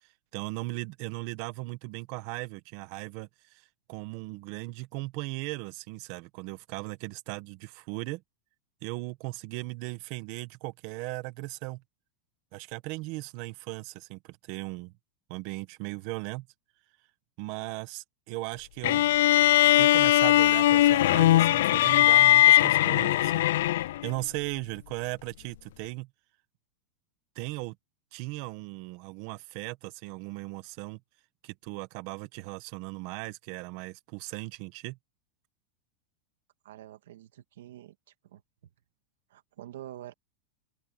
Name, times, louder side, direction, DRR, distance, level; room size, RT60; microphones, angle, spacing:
voice 1, 0.0-8.2 8.8-11.8 12.5-14.9 15.3-16.5 17.4-19.1 19.8-26.1 27.3-27.8 28.1-31.0 31.4-35.0, right 21 dB, 45° right, 1.2 m, -38 dB
sound 1, 18.8-24.1, left 14 dB, 70° left, 0.3 m, -20 dB
voice 2, 36.6-38.0 38.2-38.4 39.3-40.1, right 13 dB, 85° right, 2.0 m, -46 dB
open air
supercardioid pair, 165°, 0 cm